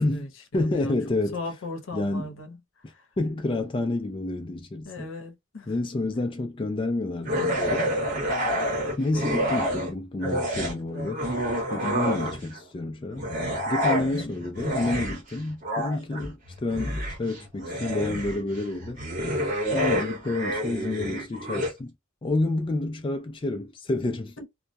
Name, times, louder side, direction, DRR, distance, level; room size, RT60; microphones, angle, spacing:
voice 1, 0.0-1.0 1.3-3.1 4.8-5.7 14.0-14.4 24.4-24.5, left 3 dB, 90° left, 0.7 m, -38 dB
voice 2, 0.5-1.4 1.9-2.3 3.2-5.1 5.7-8.0 9.0-11.2 11.7-13.3 13.7-19.0 19.7-21.9 22.2-24.4, left 2 dB, 25° left, 0.3 m, -29 dB
sound 1, 7.2-9.9 10.2-12.6 13.1-21.7, equal, 40° right, 1.0 m, -28 dB
2.2 x 2.0 x 2.7 m
head